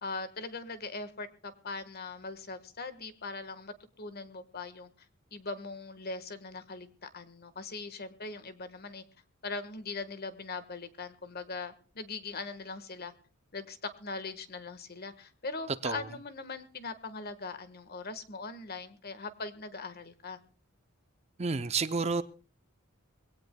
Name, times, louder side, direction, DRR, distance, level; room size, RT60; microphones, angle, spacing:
voice 1, 0.0-4.9 5.3-9.0 9.4-13.1 13.5-20.4, left 3 dB, 45° left, 1.4 m, -41 dB
voice 2, 21.4-22.2, right 4 dB, 30° right, 0.6 m, -30 dB
23.0 x 17.0 x 2.2 m
head